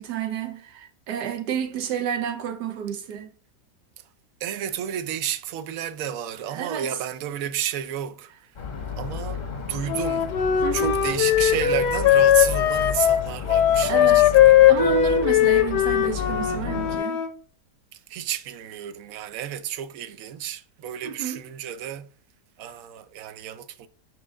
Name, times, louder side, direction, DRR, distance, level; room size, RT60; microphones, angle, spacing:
voice 1, 0.0-3.3 6.5-7.0 10.6-11.0 13.8-14.4 14.7-17.2 21.0-21.4, right 8 dB, 85° right, 1.4 m, -30 dB
voice 2, 4.4-8.3 9.0-10.3 10.7-14.5 18.1-22.1 22.6-23.9, right 10 dB, 70° right, 0.9 m, -31 dB
sound 1, 8.6-17.0, left 6 dB, 35° left, 0.8 m, -33 dB
Wind instrument woodwind instrument, 9.9-17.3, left 11 dB, 80° left, 1.3 m, -19 dB
6.2 x 4.6 x 3.5 m
omnidirectional pair, 1.8 m